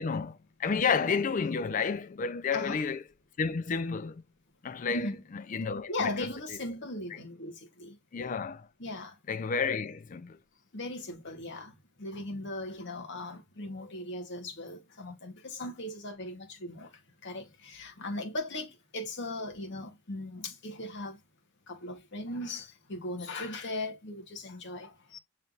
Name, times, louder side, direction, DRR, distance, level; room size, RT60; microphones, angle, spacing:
voice 1, 0.0-3.0 3.4-4.2 4.6-6.1 8.1-8.7 9.3-10.4, left 5 dB, 35° left, 0.4 m, -31 dB
voice 2, 4.9-5.2 5.9-8.0 8.8-9.2 10.7-21.2 21.7-25.2, left 2 dB, 55° left, 1.1 m, -38 dB
5.5 x 3.3 x 2.4 m
head